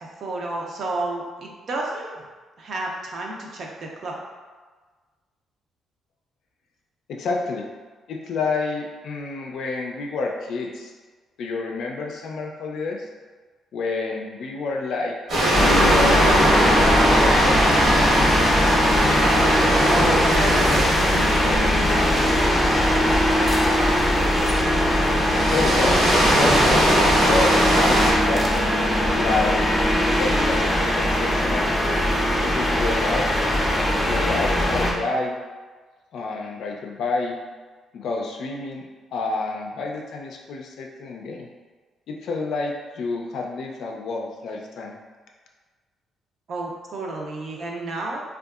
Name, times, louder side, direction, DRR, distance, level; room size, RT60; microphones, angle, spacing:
voice 1, 0.2-2.3 2.6-4.2 19.8-22.8 46.5-48.2, right 2 dB, 60° right, -1 dB, 0.5 m, -31 dB
voice 2, 7.1-7.7 8.1-10.9 11.4-13.1 13.7-17.6 25.3-26.1 26.3-28.4 29.1-29.6 30.1-30.7 31.0-31.8 32.4-33.3 34.1-35.4 36.1-37.4 37.9-41.5 42.1-45.0, left 3 dB, 70° left, 0 dB, 0.4 m, -29 dB
sound 1, 15.3-28.1, equal, 75° right, 1.1 m, -21 dB
sound 2, 15.5-34.9, left 1 dB, 20° left, 0.6 m, -21 dB
2.7 x 2.3 x 2.3 m, 1.4 s
cardioid pair, 90°, 0 cm